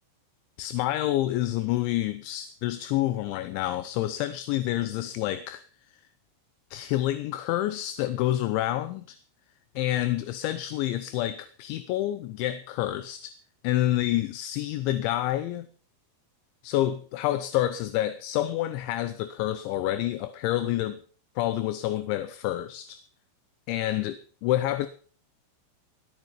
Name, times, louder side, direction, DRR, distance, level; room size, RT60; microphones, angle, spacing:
voice 1, 0.6-5.6 6.7-9.2 9.8-13.4 13.6-15.7 16.6-21.0 21.4-23.0 23.7-24.9, left 14 dB, 80° left, 2.9 m, -28 dB
19.0 x 9.6 x 5.6 m
omnidirectional pair, 5.8 m